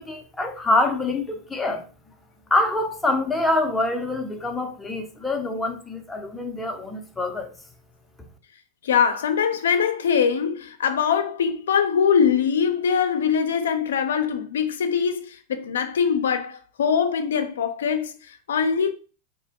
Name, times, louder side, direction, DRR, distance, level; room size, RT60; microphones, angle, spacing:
voice 1, 0.0-1.8 2.5-7.5, left 2 dB, 10° left, 0.5 m, -25 dB
voice 2, 8.8-18.9, left 7 dB, 85° left, 0.4 m, -22 dB
2.9 x 2.1 x 2.8 m
hypercardioid pair, 110°, 0 cm